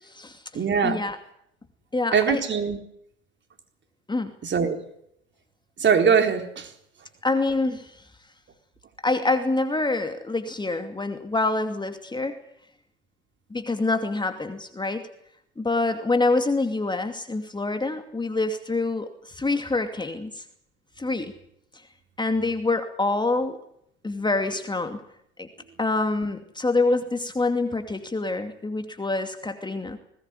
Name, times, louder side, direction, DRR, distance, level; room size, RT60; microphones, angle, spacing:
voice 1, 0.0-1.2 1.9-2.4 4.1-4.3 7.2-8.0 9.0-12.4 13.5-15.1 15.6-20.4 21.0-21.3 22.2-23.6 24.0-25.0 25.4-25.5 25.8-30.0, left 3 dB, 10° left, 7 dB, 2.5 m, -26 dB
voice 2, 0.5-1.0 2.1-2.8 4.4-4.8 5.8-6.7, right 6 dB, 30° right, 6 dB, 4.0 m, -21 dB
21.0 x 19.0 x 9.7 m, 0.72 s
figure-of-eight pair, 70°, 36 cm